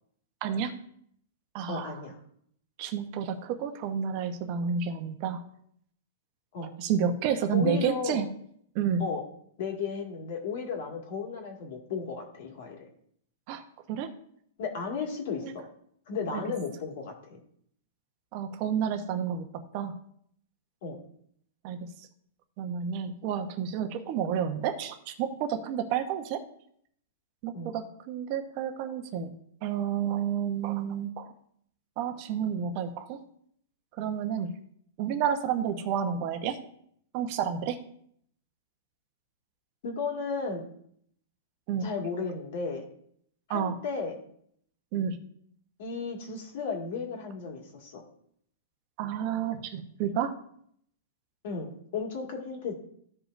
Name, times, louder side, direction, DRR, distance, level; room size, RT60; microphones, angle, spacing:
voice 1, 0.4-0.8 1.5-1.9 2.8-5.4 6.8-8.3 8.7-9.0 13.5-13.6 13.9-14.1 15.4-15.5 16.3-16.4 18.3-20.0 21.6-21.8 22.6-26.4 27.4-29.3 29.6-31.3 32.0-33.2 34.0-34.5 35.0-36.6 37.1-37.8 41.7-41.9 43.5-43.7 44.9-45.2 49.0-50.3, right 8 dB, 40° right, 7 dB, 0.9 m, -30 dB
voice 2, 1.7-2.2 6.5-6.7 7.5-8.2 9.0-9.2 9.6-12.9 14.6-15.6 16.1-17.4 20.8-21.0 27.5-27.7 39.8-40.6 41.8-42.8 43.5-44.2 45.8-48.0 51.4-52.7, left 5 dB, 55° left, 1 dB, 2.0 m, -34 dB
14.5 x 5.1 x 2.6 m, 0.67 s
hypercardioid pair, 160°, 0 cm